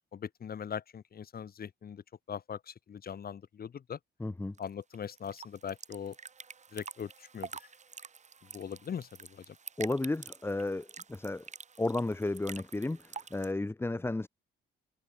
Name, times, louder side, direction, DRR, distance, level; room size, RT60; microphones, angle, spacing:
voice 1, 0.1-2.0 2.3-4.0 4.6-6.2 6.7-7.5 8.5-9.5, left 8 dB, 50° left, 2.3 m, -41 dB
voice 2, 4.2-4.5 9.8-11.5 11.8-14.3, left 2 dB, 10° left, 1.0 m, -33 dB
sound 1, 4.6-13.5, right 5 dB, 35° right, 2.0 m, -48 dB
cardioid pair, 90°, 20 cm